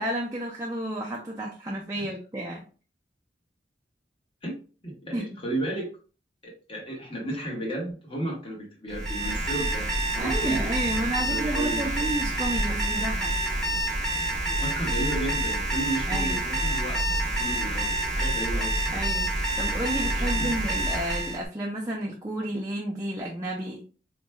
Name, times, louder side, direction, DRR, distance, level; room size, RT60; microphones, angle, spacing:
voice 1, 0.0-2.7 5.1-5.3 10.2-13.3 16.1-16.4 18.9-23.8, right 1 dB, 15° right, -3 dB, 0.5 m, -31 dB
voice 2, 4.8-6.0 6.4-12.3 14.5-17.0 17.4-19.0 20.2-20.5, right 1 dB, 30° left, -2 dB, 1.3 m, -33 dB
Alarm, 8.9-21.4, right 1 dB, 5° left, 1.1 m, -27 dB
4.4 x 3.0 x 2.2 m, 0.37 s
head